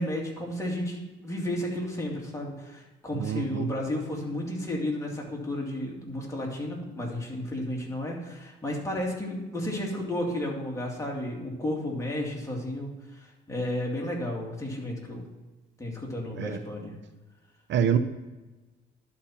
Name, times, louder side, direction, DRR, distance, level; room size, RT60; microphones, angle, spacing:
voice 1, 0.0-15.3 15.8-16.9, left 1 dB, 15° left, -2 dB, 2.4 m, -32 dB
voice 2, 3.1-3.7 16.4-16.6 17.7-18.0, right 8 dB, 65° right, 10 dB, 0.6 m, -26 dB
11.0 x 4.3 x 5.7 m, 1.2 s
cardioid pair, 90°, 20 cm